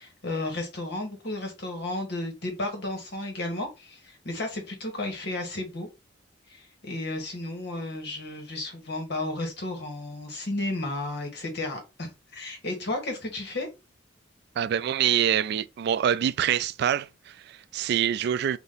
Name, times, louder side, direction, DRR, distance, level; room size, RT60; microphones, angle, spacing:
voice 1, 0.0-5.9 6.5-13.7, left 2 dB, 60° left, 1.7 m, -33 dB
voice 2, 14.6-18.6, right 9 dB, 60° right, 0.3 m, -25 dB
4.1 x 2.8 x 3.9 m
head